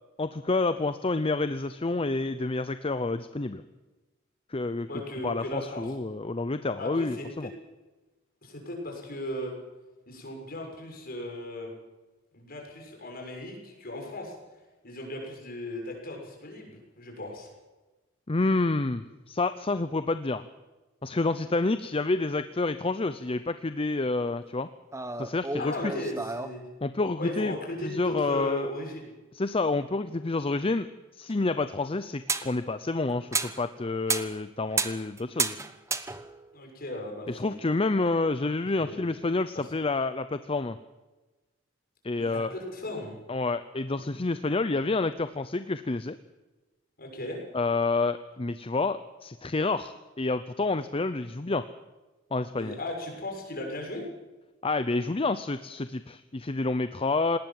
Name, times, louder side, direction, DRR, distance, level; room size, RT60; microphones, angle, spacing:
voice 1, 0.2-3.6 4.5-4.9 5.2-7.5 18.3-20.5 21.0-24.7 25.2-25.7 26.8-27.5 27.8-28.7 29.3-30.9 31.2-35.6 37.3-40.8 42.0-42.5 43.3-46.2 47.5-51.6 52.3-52.8 54.6-57.4, left 3 dB, 30° left, 12 dB, 0.7 m, -28 dB
voice 2, 4.9-5.9 6.8-7.5 8.4-9.5 10.1-11.7 12.3-14.3 14.8-17.5 25.6-26.7 27.2-29.1 36.5-37.6 38.8-39.1 39.5-39.7 42.2-43.2 47.0-47.4 52.5-54.1, left 1 dB, 50° left, 1 dB, 6.6 m, -37 dB
sound 1, 24.9-26.6 31.3-31.4 32.3-32.5 33.1-33.7 34.1-34.4 34.7-36.5, right 4 dB, 15° right, 1.1 m, -31 dB
19.5 x 18.5 x 7.7 m, 1.2 s
head